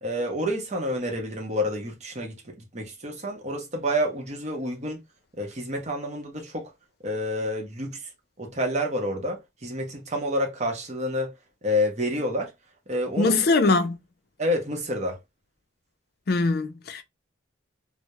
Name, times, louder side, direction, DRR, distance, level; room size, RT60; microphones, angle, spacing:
voice 1, 0.0-5.0 5.4-6.7 7.0-8.1 8.4-11.3 11.6-12.5 12.9-13.4 14.4-15.2, equal, 40° right, 0.7 m, -28 dB
voice 2, 13.2-14.0 16.3-17.0, left 3 dB, 55° left, 0.4 m, -22 dB
2.2 x 2.0 x 2.8 m
head